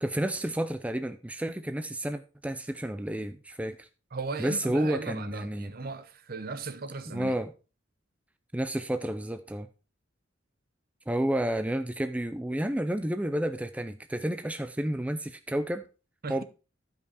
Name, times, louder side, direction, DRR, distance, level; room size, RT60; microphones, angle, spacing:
voice 1, 0.0-3.9 4.4-5.7 7.1-7.5 8.5-9.7 11.1-15.8 16.3-16.4, right 1 dB, 5° right, 0.4 m, -30 dB
voice 2, 4.1-7.3 16.2-16.4, right 3 dB, 50° right, 0.8 m, -37 dB
12.5 x 5.4 x 4.0 m
head